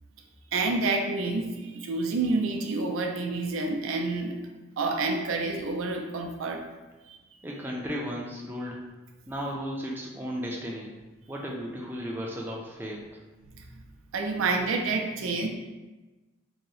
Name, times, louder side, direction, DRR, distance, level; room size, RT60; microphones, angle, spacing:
voice 1, 0.5-4.4 4.8-6.6 7.1-7.2 13.5-13.6 14.1-15.5, right 3 dB, 85° right, 3 dB, 0.4 m, -28 dB
voice 2, 7.4-8.8 9.3-10.9 11.3-13.0, equal, 10° right, -2 dB, 0.3 m, -34 dB
2.8 x 2.0 x 3.8 m, 1.2 s
head